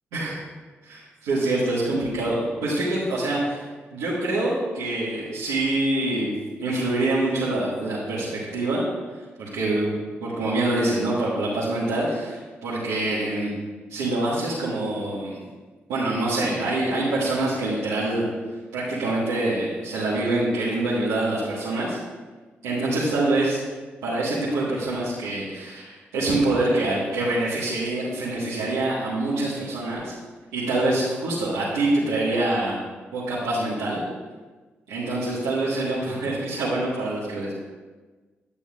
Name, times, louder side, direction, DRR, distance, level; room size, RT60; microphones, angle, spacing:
voice 1, 0.8-3.6 3.9-6.3 6.6-8.8 9.4-9.9 10.2-13.5 13.9-15.4 15.9-18.2 18.7-22.0 22.6-23.6 24.0-30.1 30.5-32.8 33.1-34.0 34.9-37.5, right 2 dB, 85° right, -10 dB, 1.5 m, -25 dB
9.9 x 8.4 x 2.5 m, 1.3 s
hypercardioid pair, 40°, 5 cm